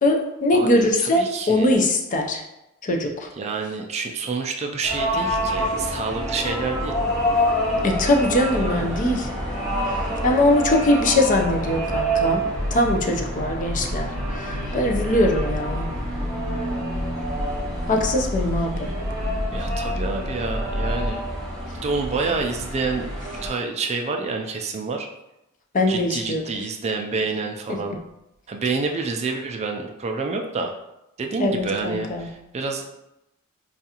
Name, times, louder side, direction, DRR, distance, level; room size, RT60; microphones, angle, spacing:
voice 1, 0.0-2.4 2.8-3.3 7.8-9.3 9.9-15.9 17.9-18.9 25.7-26.4 27.7-27.8 31.4-32.3, left 1 dB, 40° left, 3 dB, 0.4 m, -22 dB
voice 2, 0.5-1.7 3.4-6.9 8.5-9.0 19.5-21.2 21.8-23.1 23.4-25.1 25.9-28.0 28.5-30.7 31.2-32.9, right 4 dB, 30° right, 3 dB, 0.3 m, -28 dB
sound 1, 4.8-23.5, equal, ahead, 1.1 m, -28 dB
sound 2, 12.5-21.1, left 1 dB, 90° right, 0.6 m, -30 dB
4.5 x 2.4 x 2.8 m, 0.91 s
head